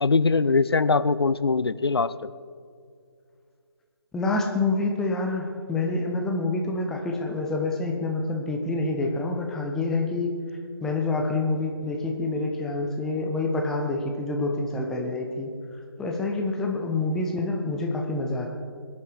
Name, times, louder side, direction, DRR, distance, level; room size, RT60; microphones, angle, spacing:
voice 1, 0.0-2.3, left 4 dB, 65° left, 16 dB, 0.5 m, -22 dB
voice 2, 4.1-10.4 10.8-15.5 16.0-18.5, left 2 dB, 5° left, 1 dB, 0.5 m, -27 dB
21.5 x 8.5 x 4.6 m, 2.2 s
figure-of-eight pair, 150°, 14 cm